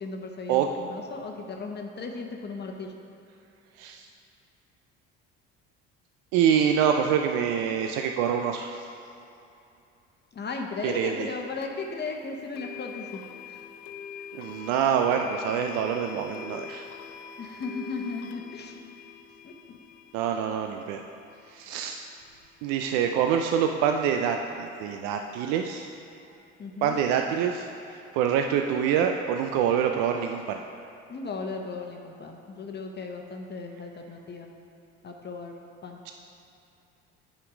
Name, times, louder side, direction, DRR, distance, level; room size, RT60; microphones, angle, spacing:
voice 1, 0.0-2.9 10.3-13.2 13.5-13.6 17.4-18.8 19.4-19.8 26.6-27.0 31.1-34.5 35.0-36.0, left 4 dB, 35° left, 2 dB, 1.0 m, -36 dB
voice 2, 3.8-4.1 6.3-8.8 10.8-11.3 14.3-16.9 20.1-21.0 21.5-22.0 22.6-25.9 26.8-30.6 36.1-36.2, right 8 dB, 75° right, 4 dB, 0.5 m, -26 dB
sound 1, 11.6-11.7 12.5-23.5, left 8 dB, 70° left, 0.6 m, -44 dB
8.4 x 5.2 x 5.0 m, 2.8 s
supercardioid pair, 75°, 30 cm